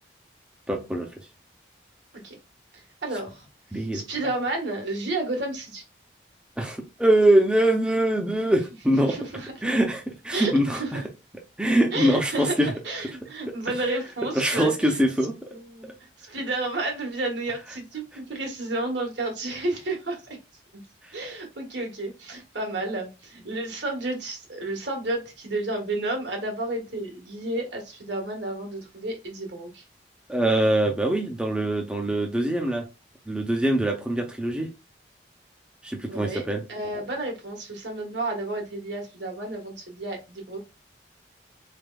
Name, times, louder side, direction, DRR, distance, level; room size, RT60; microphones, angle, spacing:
voice 1, 0.7-1.1 3.7-4.0 6.6-9.2 9.6-11.0 11.6-12.7 14.3-15.5 30.3-32.8 33.3-34.7 35.8-36.6, right 1 dB, 5° right, 0.6 m, -23 dB
voice 2, 2.7-3.4 3.7-5.8 9.0-9.8 10.3-11.0 11.9-15.0 15.5-15.9 16.2-20.2 21.1-29.8 36.1-40.7, right 2 dB, 75° right, 1.5 m, -31 dB
4.1 x 3.4 x 2.3 m
head